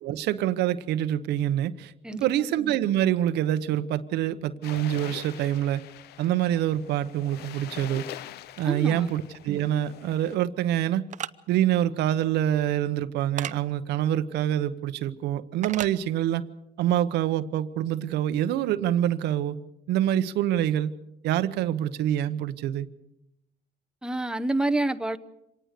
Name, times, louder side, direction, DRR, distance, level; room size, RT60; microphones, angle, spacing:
voice 1, 0.0-5.8 6.2-8.0 8.6-11.1 11.5-16.4 16.8-19.6 19.9-20.9 21.2-22.9, right 11 dB, 80° right, 11 dB, 1.0 m, -26 dB
sound 1, 4.6-10.4, left 12 dB, 75° left, 0.7 m, -43 dB
voice 2, 8.6-9.1 24.0-25.2, right 2 dB, 5° right, 9 dB, 0.8 m, -27 dB
sound 2, 11.1-11.3 13.4-13.6 15.6-15.9, right 10 dB, 45° right, 0.7 m, -33 dB
25.5 x 18.5 x 6.6 m, 0.85 s
cardioid pair, 110°, 17 cm